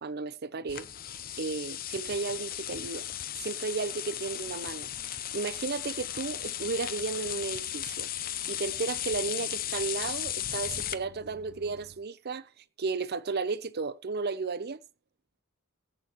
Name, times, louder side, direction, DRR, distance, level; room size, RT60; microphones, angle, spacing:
voice 1, 0.0-0.9 1.4-3.1 3.4-8.1 8.5-12.5 12.8-14.8, right 4 dB, 45° right, 0.6 m, -34 dB
sound 1, 0.7-10.9, left 11 dB, 40° left, 0.7 m, -36 dB
sound 2, 4.4-12.0, right 1 dB, 90° right, 3.4 m, -56 dB
20.5 x 8.7 x 3.0 m
head